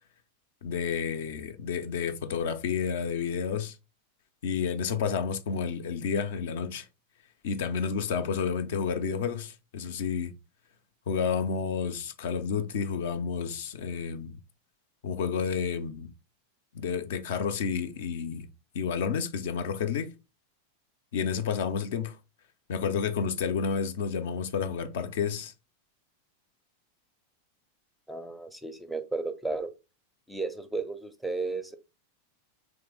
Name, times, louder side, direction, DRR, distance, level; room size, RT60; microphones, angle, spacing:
voice 1, 0.6-3.8 4.4-6.9 7.4-10.3 11.1-14.4 15.0-16.1 16.7-18.5 18.7-20.1 21.1-22.2 22.7-25.5, left 6 dB, 55° left, 0.4 m, -30 dB
voice 2, 28.1-29.7 30.3-31.8, right 3 dB, ahead, 0.5 m, -33 dB
3.5 x 3.1 x 3.4 m
figure-of-eight pair, 90°, 0 cm